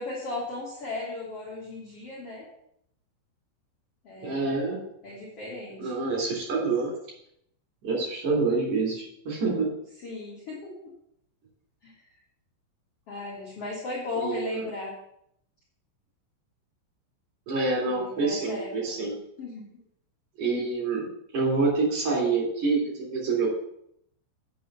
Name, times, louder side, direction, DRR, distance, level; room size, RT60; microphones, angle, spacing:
voice 1, 0.0-2.5 4.0-4.5 5.0-5.9 10.0-10.9 11.8-11.9 13.1-14.9 17.9-19.0 19.4-19.6, left 2 dB, 45° left, -5 dB, 2.0 m, -36 dB
voice 2, 4.2-4.8 5.8-6.9 7.8-9.7 14.2-14.7 17.5-19.2 20.4-21.1 21.3-23.5, right 3 dB, 45° right, -3 dB, 4.3 m, -27 dB
8.5 x 6.9 x 5.6 m, 0.73 s
omnidirectional pair, 5.7 m